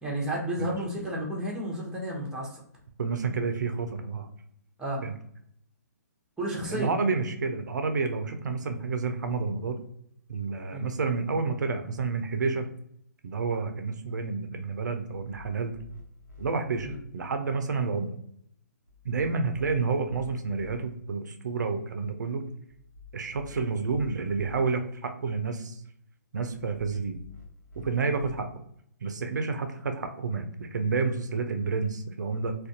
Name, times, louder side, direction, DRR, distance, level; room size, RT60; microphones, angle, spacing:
voice 1, 0.0-2.6 4.8-5.1 6.4-6.9 10.7-10.9 16.8-17.0, right 1 dB, 5° right, -4 dB, 0.7 m, -32 dB
voice 2, 3.0-4.3 5.0-5.1 6.7-9.8 10.3-12.7 13.2-15.8 16.4-18.1 19.0-22.5 23.1-25.8 26.3-27.2 27.8-28.5 29.0-32.6, right 4 dB, 80° right, 7 dB, 0.4 m, -29 dB
sound 1, 15.1-17.0 18.9-20.8 22.7-24.6 26.5-28.4, left 5 dB, 80° left, 0.9 m, -50 dB
2.4 x 2.2 x 2.6 m, 0.69 s
hypercardioid pair, 140°, 9 cm